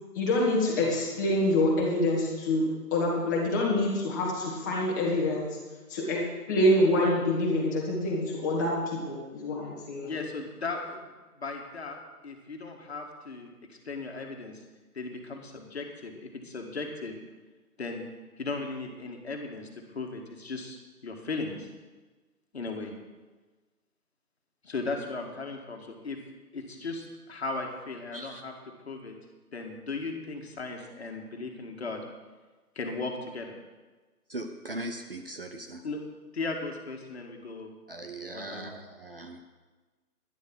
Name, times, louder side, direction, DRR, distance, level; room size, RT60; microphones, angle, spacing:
voice 1, 0.1-5.6 5.9-10.1, left 1 dB, 10° left, -4 dB, 1.6 m, -26 dB
voice 2, 10.0-11.1 11.4-12.0 12.2-14.6 14.9-17.2 17.8-18.0 18.4-21.7 22.5-22.9 24.6-26.2 26.5-28.5 28.9-29.1 29.5-32.0 32.8-33.5 35.8-36.0 36.3-37.7 38.3-38.8, left 3 dB, 40° left, 3 dB, 2.0 m, -37 dB
voice 3, 34.3-35.8 37.9-39.4, right 1 dB, 35° right, 5 dB, 0.9 m, -39 dB
12.0 x 11.0 x 6.1 m, 1.3 s
figure-of-eight pair, 165°, 47 cm